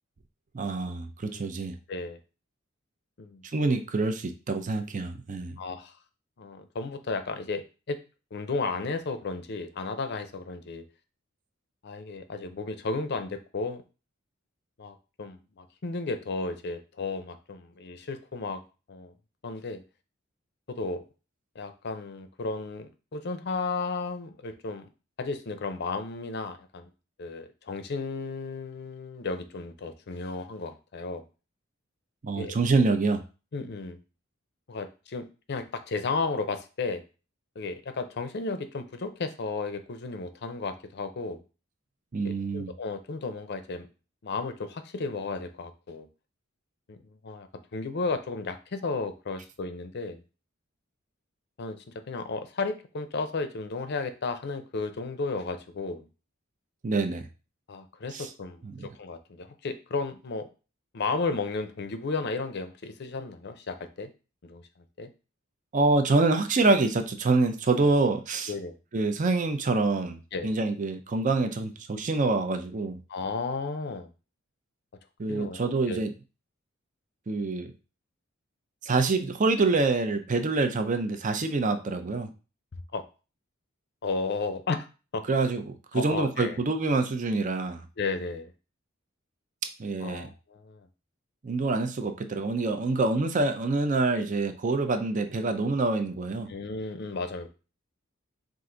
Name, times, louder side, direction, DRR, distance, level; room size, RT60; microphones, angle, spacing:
voice 1, 0.5-1.8 3.5-5.6 32.2-33.2 42.1-42.7 56.8-57.3 58.1-58.3 58.6-58.8 65.7-68.5 68.9-70.2 70.4-73.0 75.2-76.1 77.3-77.7 78.8-82.3 85.3-87.9 89.8-90.3 91.4-96.5, right 3 dB, 40° right, 7 dB, 0.5 m, -26 dB
voice 2, 1.9-2.2 3.2-3.4 5.6-5.9 6.4-8.0 8.3-10.8 11.8-13.8 14.8-18.6 18.9-19.1 19.4-19.8 20.7-21.0 21.6-24.9 25.2-26.9 27.2-31.2 32.3-32.6 33.5-34.0 34.7-37.0 37.6-41.4 42.2-43.9 44.2-46.1 46.9-50.2 51.6-56.0 57.7-60.5 60.9-64.1 64.4-64.6 65.0-65.1 67.8-67.9 68.5-68.8 70.3-70.5 73.1-74.1 75.3-76.0 82.9-83.0 84.0-84.9 85.1-85.2 85.9-86.6 88.0-88.5 90.0-90.9 94.1-94.2 96.5-97.5, left 3 dB, 55° left, 9 dB, 0.5 m, -34 dB
4.5 x 2.5 x 3.8 m, 0.32 s
head